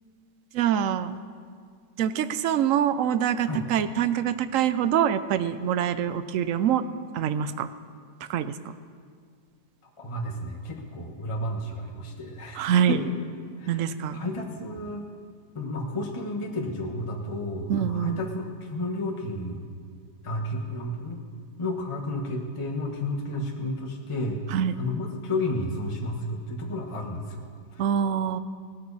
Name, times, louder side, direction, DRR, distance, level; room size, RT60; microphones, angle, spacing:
voice 1, 0.5-1.2 2.0-6.8 7.1-7.7 8.3-8.5 12.6-13.0 13.7-14.2 17.7-18.2 24.5-24.7 27.8-28.4, right 9 dB, 65° right, 12 dB, 0.8 m, -25 dB
voice 2, 9.8-13.1 13.6-15.0 15.5-19.7 20.2-21.2 21.6-24.4 24.8-27.8, left 1 dB, 20° left, -1 dB, 1.2 m, -32 dB
18.5 x 13.0 x 4.1 m, 2.1 s
omnidirectional pair, 1.8 m